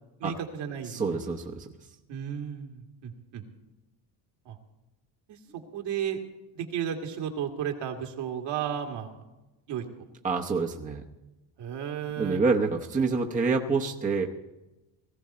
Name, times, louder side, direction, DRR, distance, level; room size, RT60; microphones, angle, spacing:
voice 1, 0.2-1.2 2.1-3.4 4.5-4.6 5.3-6.2 6.5-9.2 9.7-10.1 11.6-12.4, right 8 dB, 60° right, 3 dB, 2.2 m, -34 dB
voice 2, 0.9-1.7 10.2-11.0 12.2-14.3, right 4 dB, 15° right, 2 dB, 0.9 m, -27 dB
18.0 x 15.5 x 4.3 m, 1.0 s
cardioid pair, 150°, 47 cm